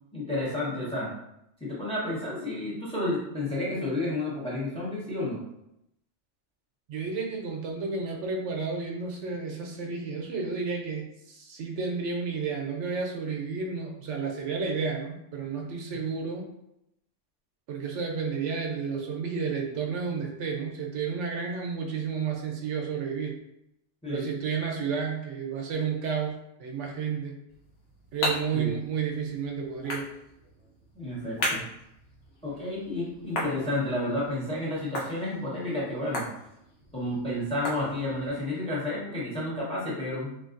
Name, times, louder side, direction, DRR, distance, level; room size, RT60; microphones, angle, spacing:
voice 1, 0.1-1.1 1.6-5.4 24.0-24.3 28.5-28.7 30.9-31.6 32.4-36.3 36.9-40.3, left 1 dB, 5° left, -6 dB, 0.7 m, -31 dB
voice 2, 6.9-16.5 17.7-23.4 24.1-27.4 28.1-30.1, right 5 dB, 75° right, 1 dB, 0.9 m, -31 dB
sound 1, 27.5-38.4, left 1 dB, 75° left, 1.1 m, -37 dB
3.2 x 2.5 x 2.4 m, 0.81 s
omnidirectional pair, 1.2 m